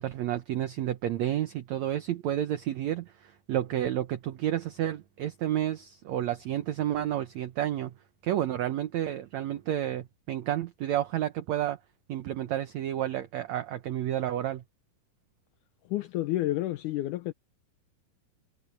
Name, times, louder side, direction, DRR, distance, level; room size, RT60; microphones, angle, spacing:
voice 1, 0.0-7.9 8.2-11.8 12.1-14.6, right 12 dB, 70° right, 1.8 m, -30 dB
voice 2, 15.9-17.3, left 15 dB, 75° left, 1.9 m, -30 dB
omnidirectional pair, 4.2 m